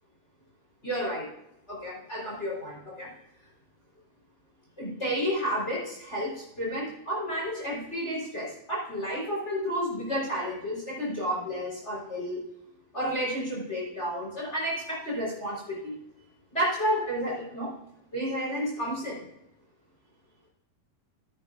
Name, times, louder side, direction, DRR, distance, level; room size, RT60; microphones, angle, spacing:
voice 1, 0.8-1.3 1.7-3.1 4.8-12.4 12.9-15.9 16.5-17.7 18.1-19.2, equal, 20° left, -4 dB, 3.9 m, -31 dB
15.0 x 8.9 x 2.5 m, 0.81 s
omnidirectional pair, 4.0 m